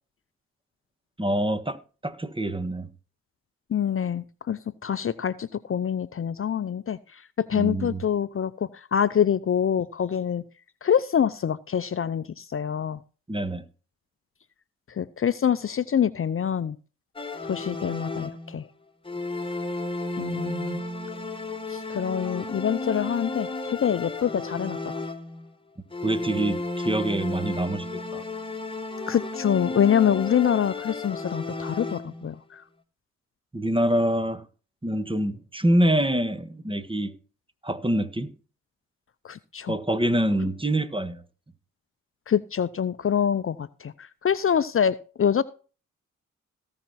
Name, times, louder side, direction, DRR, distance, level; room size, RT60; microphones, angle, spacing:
voice 1, 1.2-2.9 7.5-8.0 13.3-13.6 26.0-28.2 33.5-34.4 34.8-37.1 37.6-38.3 39.7-41.2, right 1 dB, 15° right, 1.5 m, -25 dB
voice 2, 3.7-10.4 10.8-13.0 14.9-16.8 17.4-18.7 20.2-20.8 21.7-25.0 29.1-32.6 39.2-39.8 42.3-45.4, left 8 dB, 40° left, 0.7 m, -25 dB
sound 1, 17.2-18.6 19.1-25.5 25.9-32.4, left 2 dB, 15° left, 1.8 m, -33 dB
17.5 x 5.9 x 4.2 m
hypercardioid pair, 40°, 33 cm